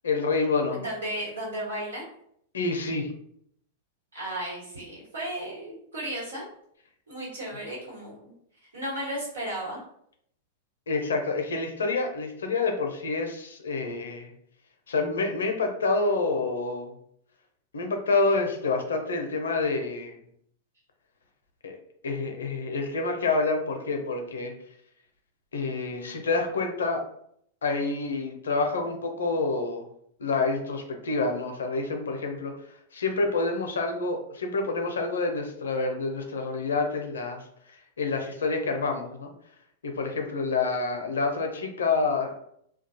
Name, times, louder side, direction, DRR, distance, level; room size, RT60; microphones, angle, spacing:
voice 1, 0.0-0.8 2.5-3.1 10.9-14.3 14.9-16.9 17.7-20.2 21.6-21.8 22.0-24.5 25.5-27.0 27.6-29.8 30.2-32.7 32.9-39.3 39.8-42.5, left 3 dB, 85° left, 4 dB, 0.5 m, -28 dB
voice 2, 0.7-2.1 4.1-6.4 7.1-8.3 8.7-9.8, right 1 dB, 90° right, -6 dB, 1.4 m, -34 dB
2.3 x 2.2 x 2.7 m, 0.69 s
hypercardioid pair, 110°, 0 cm